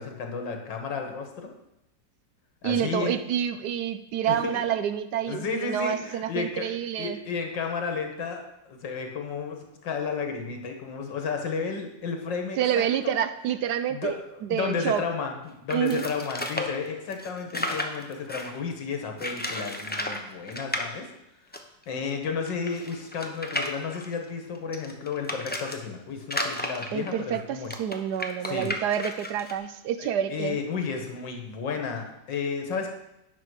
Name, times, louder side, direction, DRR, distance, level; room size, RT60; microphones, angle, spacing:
voice 1, 0.0-1.5 2.6-3.1 4.3-4.6 5.3-6.7 7.0-13.1 13.9-14.2 14.5-21.1 21.9-27.7 28.4-28.7 30.0-32.9, left 5 dB, 80° left, 3 dB, 2.1 m, -32 dB
voice 2, 2.6-7.2 12.6-14.1 14.5-15.0 15.7-16.0 26.9-30.6, right 9 dB, 70° right, 11 dB, 1.1 m, -28 dB
sound 1, 15.7-18.6 19.2-20.2 20.5-20.9 21.5-21.6 21.8-21.9 22.5-25.8 26.2-29.5, left 1 dB, 15° left, 0.3 m, -33 dB
10.5 x 5.6 x 6.4 m, 0.89 s
omnidirectional pair, 2.0 m